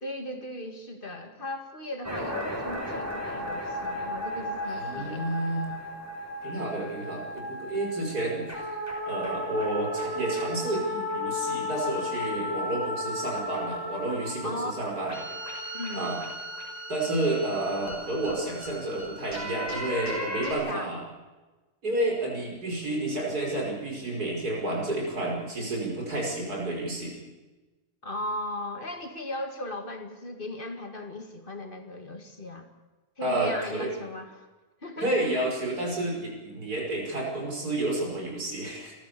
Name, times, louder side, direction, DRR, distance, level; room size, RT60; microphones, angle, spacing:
voice 1, 0.0-5.3 14.4-15.0 15.7-16.1 20.4-20.9 28.0-32.7 33.2-34.5 34.8-35.5, left 1 dB, 35° left, 5 dB, 2.4 m, -37 dB
sound 1, 2.0-20.5, left 1 dB, 10° right, 5.8 m, -35 dB
voice 2, 4.7-5.7 6.4-8.4 9.0-15.1 15.9-16.2 16.9-21.0 21.8-27.2 33.2-33.9 35.0-38.9, right 2 dB, 75° right, -1 dB, 5.9 m, -30 dB
29.5 x 14.0 x 6.9 m, 1.2 s
omnidirectional pair, 1.6 m